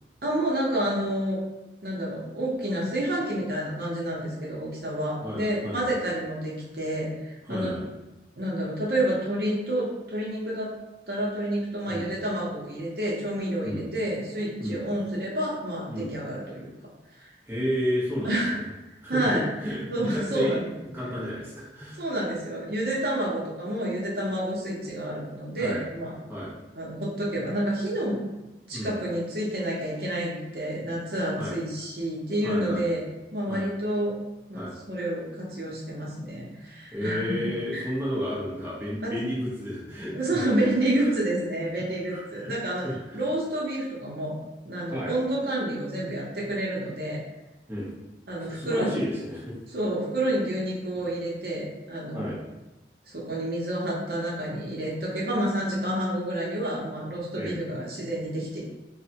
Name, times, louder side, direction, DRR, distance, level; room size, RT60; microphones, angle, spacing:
voice 1, 0.2-1.4 1.8-7.8 8.4-10.7 11.1-16.7 17.2-17.3 18.2-18.6 19.1-19.5 19.9-20.7 22.0-26.2 26.8-28.2 28.7-33.0 33.3-34.1 34.5-37.4 37.7-37.9 39.0-39.2 40.1-42.9 43.1-44.3 44.6-47.2 48.3-49.0 49.7-52.3 53.1-58.6, right 1 dB, 55° right, -4 dB, 0.7 m, -29 dB
voice 2, 5.2-5.9 7.5-7.8 11.9-12.1 13.6-13.8 14.6-14.8 15.9-16.1 17.5-18.6 19.0-20.6 20.9-22.0 25.6-25.8 26.3-26.5 28.7-28.9 31.4-31.5 32.4-32.8 33.5-33.6 34.5-34.7 36.9-40.3 41.0-41.1 42.1-43.2 44.9-45.1 47.7-47.9 48.5-49.6 52.1-52.4 57.3-57.5, equal, 10° right, -8 dB, 0.5 m, -32 dB
3.2 x 2.1 x 2.7 m, 1.0 s
head